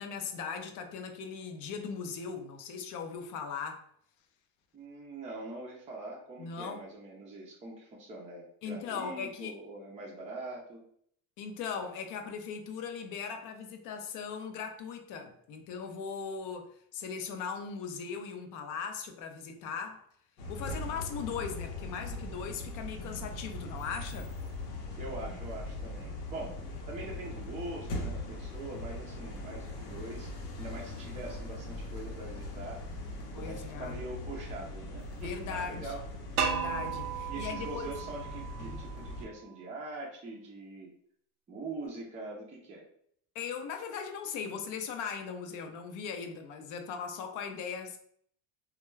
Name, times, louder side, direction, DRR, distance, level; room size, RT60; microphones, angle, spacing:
voice 1, 0.0-3.9 6.4-6.9 8.6-9.5 11.4-20.1 20.5-24.3 33.3-34.0 35.2-36.0 36.4-37.9 38.6-38.8 43.3-48.0, left 6 dB, 45° left, 0.5 m, -39 dB
voice 2, 4.7-10.8 24.9-26.6 26.9-30.3 30.6-32.8 33.3-36.0 37.3-40.9 41.5-42.8, right 2 dB, 15° right, 0.4 m, -43 dB
sound 1, 20.4-39.3, left 2 dB, 85° left, 0.9 m, -40 dB
sound 2, 36.4-39.3, right 7 dB, 75° right, 0.5 m, -35 dB
2.2 x 2.1 x 3.1 m
supercardioid pair, 120°, 46 cm